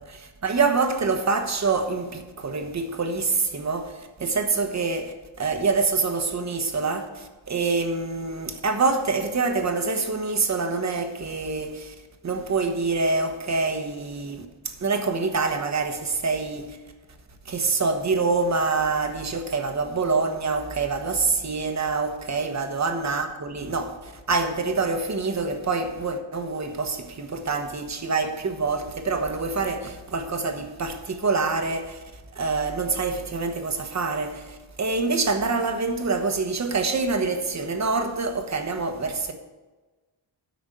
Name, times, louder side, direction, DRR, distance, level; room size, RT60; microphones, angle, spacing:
voice 1, 0.4-11.9 12.2-16.8 17.4-32.0 32.3-39.3, right 4 dB, 35° right, 1.1 m, -26 dB
9.4 x 6.1 x 7.8 m
wide cardioid pair, 145°, 45 cm